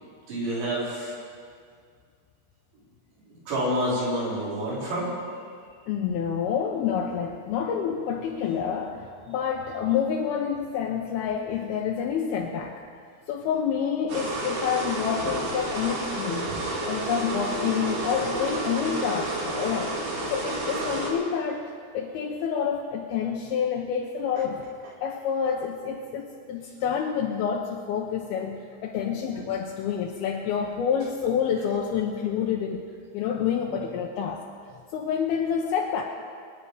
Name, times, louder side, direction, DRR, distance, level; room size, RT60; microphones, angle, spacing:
voice 1, 0.3-1.1 3.5-5.1 15.2-15.3 16.5-16.6 17.5-17.9 18.3-18.7, equal, 75° right, -7 dB, 6.8 m, -29 dB
voice 2, 5.9-12.8 13.3-16.5 16.9-19.9 20.3-21.7 21.9-24.6 25.0-34.4 34.9-36.0, left 7 dB, 80° left, 0 dB, 2.3 m, -28 dB
sound 1, 14.1-21.1, right 1 dB, 55° right, 4.8 m, -30 dB
24.0 x 10.0 x 4.9 m, 2.1 s
omnidirectional pair, 5.3 m